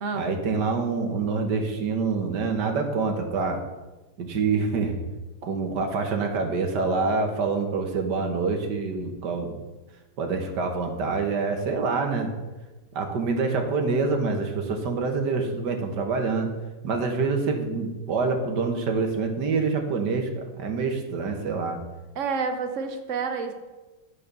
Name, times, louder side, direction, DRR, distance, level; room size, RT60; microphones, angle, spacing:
voice 1, 0.1-3.6 4.2-5.0 5.4-9.6 10.2-12.3 12.9-16.5 16.8-21.8, right 4 dB, 85° right, 4 dB, 1.9 m, -26 dB
voice 2, 22.1-23.5, right 5 dB, 50° right, 6 dB, 1.3 m, -29 dB
11.5 x 5.2 x 6.8 m, 1.2 s
omnidirectional pair, 1.8 m